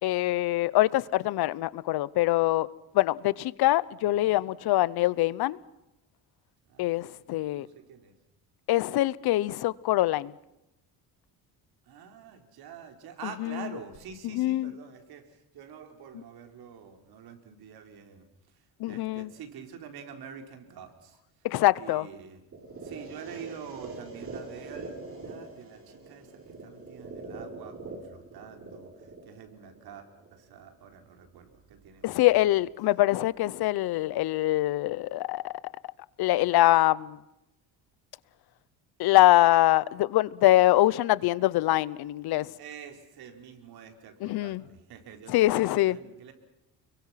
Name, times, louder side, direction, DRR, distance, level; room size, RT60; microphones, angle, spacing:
voice 1, 0.0-2.7 2.9-5.6 6.8-7.7 8.7-10.3 13.4-13.6 14.3-14.7 18.8-19.3 21.4-22.1 32.0-35.5 36.2-37.2 39.0-42.5 44.2-44.6 45.3-46.0, left 16 dB, 75° left, 0.9 m, -24 dB
voice 2, 6.7-8.2 11.8-21.5 21.8-32.2 42.6-46.3, right 7 dB, 70° right, 4.5 m, -47 dB
sound 1, 22.5-30.5, right 3 dB, 35° right, 6.9 m, -43 dB
30.0 x 22.5 x 5.9 m
cardioid pair, 140°, 39 cm